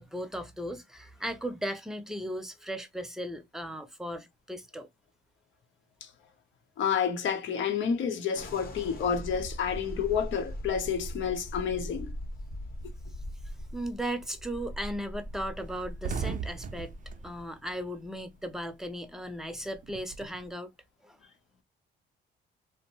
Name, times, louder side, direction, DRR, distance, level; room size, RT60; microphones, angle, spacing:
voice 1, 0.0-4.9 13.7-17.0 17.2-20.7 21.0-21.2, equal, ahead, 0.6 m, -37 dB
voice 2, 6.8-12.1, left 7 dB, 75° left, 0.9 m, -29 dB
sound 1, 8.3-17.5, equal, 50° left, 1.0 m, -41 dB
sound 2, 13.9-14.3 14.7-14.8 15.1-15.2 15.5-18.5 18.8-20.5, right 5 dB, 40° right, 0.4 m, -38 dB
2.6 x 2.1 x 2.9 m
cardioid pair, 90°, 20 cm